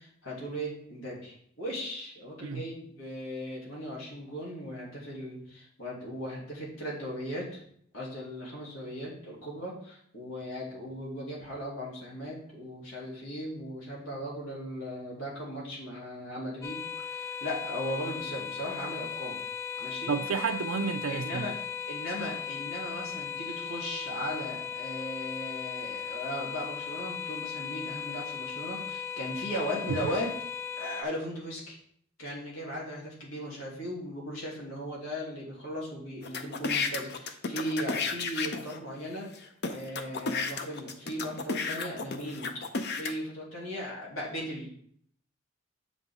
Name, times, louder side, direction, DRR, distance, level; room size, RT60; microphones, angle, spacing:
voice 1, 0.0-7.6 7.9-19.4 19.8-20.1 21.1-21.5 21.9-30.3 30.8-31.8 32.2-39.3 39.6-42.5 42.9-44.7, equal, 90° left, 2.8 m, -37 dB
sound 1, 16.6-31.0, left 8 dB, 15° left, 0.4 m, -37 dB
voice 2, 19.8-21.5 29.9-30.0, right 5 dB, 80° right, 0.5 m, -31 dB
sound 2, 36.2-38.8 39.3-39.4 39.6-43.1, left 4 dB, 55° left, 0.7 m, -32 dB
7.5 x 5.4 x 3.6 m
head